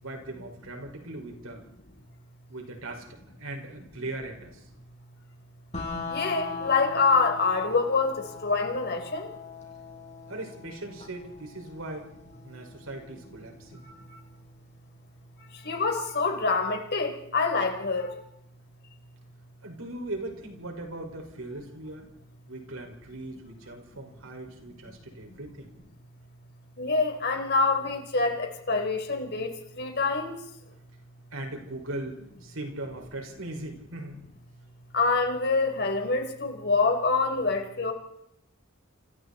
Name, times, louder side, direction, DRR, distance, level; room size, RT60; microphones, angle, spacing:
voice 1, 0.0-1.6 2.5-4.6 10.3-12.1 12.4-13.9 19.6-22.1 22.5-25.7 31.3-34.2, right 2 dB, 85° right, 2 dB, 5.7 m, -39 dB
sound 1, 5.7-15.7, left 4 dB, 35° left, 6.6 m, -41 dB
voice 2, 6.1-8.2 8.4-9.3 15.6-18.2 26.8-30.4 34.9-37.9, left 4 dB, 50° left, 4 dB, 4.2 m, -26 dB
28.5 x 28.0 x 4.4 m, 0.84 s
head